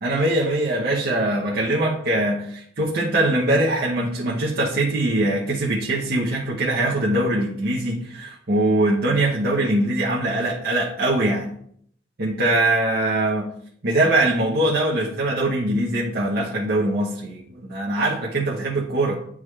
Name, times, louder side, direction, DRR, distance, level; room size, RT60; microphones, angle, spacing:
voice 1, 0.0-11.5 12.2-13.6 13.8-19.2, right 1 dB, 55° right, -4 dB, 0.9 m, -22 dB
9.5 x 3.6 x 3.2 m, 0.64 s
head